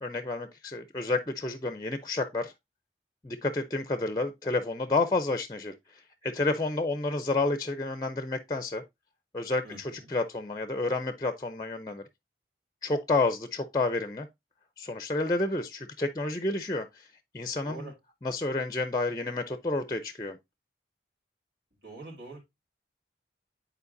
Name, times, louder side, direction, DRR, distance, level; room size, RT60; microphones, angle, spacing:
voice 1, 0.0-2.5 3.2-5.7 6.2-8.8 9.3-12.0 12.8-14.3 14.8-17.1 17.3-17.9 18.2-20.4, left 2 dB, 20° left, 0.5 m, -30 dB
voice 2, 9.6-10.1 17.6-17.9 21.8-22.4, right 2 dB, 80° right, 3.4 m, -44 dB
9.6 x 4.5 x 2.6 m
head